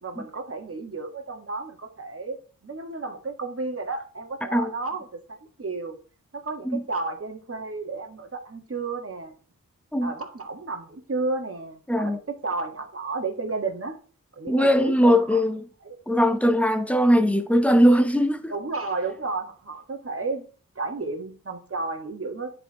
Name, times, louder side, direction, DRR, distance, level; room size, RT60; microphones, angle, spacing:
voice 1, 0.0-2.4 2.6-6.0 6.3-9.3 10.0-13.9 14.4-15.4 15.8-16.0 17.1-17.4 18.5-20.4 20.7-22.5, right 3 dB, 40° right, 1.6 m, -32 dB
voice 2, 11.9-12.2 14.5-15.6 16.1-18.5, equal, 5° left, 0.9 m, -20 dB
9.9 x 4.4 x 3.0 m
wide cardioid pair, 50°, 35 cm